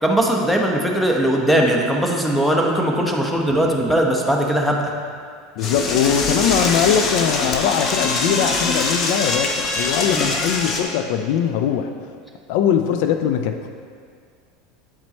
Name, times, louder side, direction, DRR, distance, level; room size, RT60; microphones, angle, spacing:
voice 1, 0.0-4.9 10.1-10.3, right 1 dB, ahead, 0 dB, 1.0 m, -19 dB
voice 2, 5.6-11.9 12.5-13.7, left 8 dB, 70° left, 7 dB, 0.4 m, -21 dB
Door / Toilet flush, 5.6-10.8, left 3 dB, 40° left, 0.9 m, -23 dB
8.8 x 4.4 x 4.2 m, 2.1 s
supercardioid pair, 110°, 0 cm